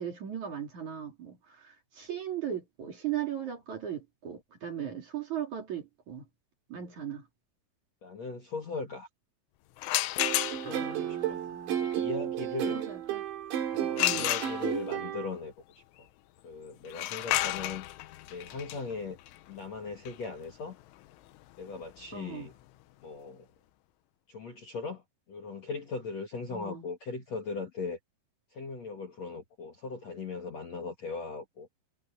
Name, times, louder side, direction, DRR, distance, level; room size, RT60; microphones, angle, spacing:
voice 1, 0.0-6.2 6.7-7.3 10.7-11.8 12.7-13.2 14.0-14.3 22.1-22.5 26.5-26.9, right 9 dB, 45° right, 3.5 m, -38 dB
voice 2, 8.0-9.1 10.5-11.4 11.8-12.8 13.7-16.1 16.4-17.9 18.3-19.2 19.5-20.8 21.6-22.5 23.0-23.5 24.3-25.0 25.3-28.0 28.5-31.7, left 4 dB, 50° left, 2.3 m, -39 dB
sound 1, 9.8-10.9 14.0-15.0 16.9-22.5, left 15 dB, 80° left, 3.5 m, -32 dB
sound 2, 10.2-15.3, right 10 dB, 65° right, 4.6 m, -33 dB
omnidirectional pair, 5.6 m